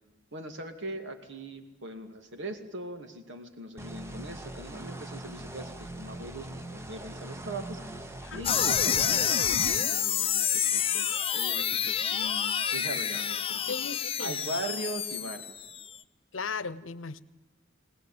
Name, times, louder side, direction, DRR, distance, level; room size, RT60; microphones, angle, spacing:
voice 1, 0.3-7.8 8.3-13.7 14.2-15.4, right 1 dB, 65° right, 6 dB, 2.5 m, -40 dB
sound 1, 3.8-9.3, right 1 dB, 15° right, 1.1 m, -41 dB
sound 2, 8.4-15.9, left 8 dB, 30° left, 0.7 m, -28 dB
voice 2, 13.7-14.3 16.3-17.2, left 4 dB, 80° left, 17 dB, 0.9 m, -36 dB
20.5 x 19.0 x 8.8 m, 1.1 s
head